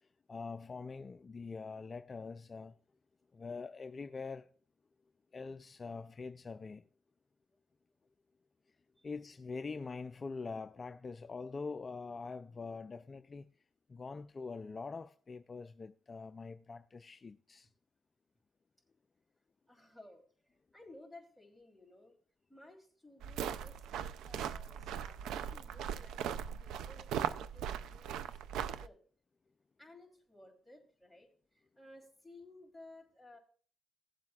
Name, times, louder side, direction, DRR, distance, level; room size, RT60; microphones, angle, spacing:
voice 1, 0.3-2.8 3.3-4.5 5.3-6.8 9.0-13.5 13.9-17.7, left 4 dB, 35° left, 0.4 m, -44 dB
voice 2, 19.7-20.2 20.5-22.2 22.5-23.8 24.2-28.1 28.5-29.0 29.8-33.4, left 2 dB, 5° right, 3.2 m, -57 dB
sound 1, 23.2-28.9, right 8 dB, 85° right, 0.4 m, -39 dB
17.5 x 7.6 x 2.4 m
cardioid pair, 90°, 0 cm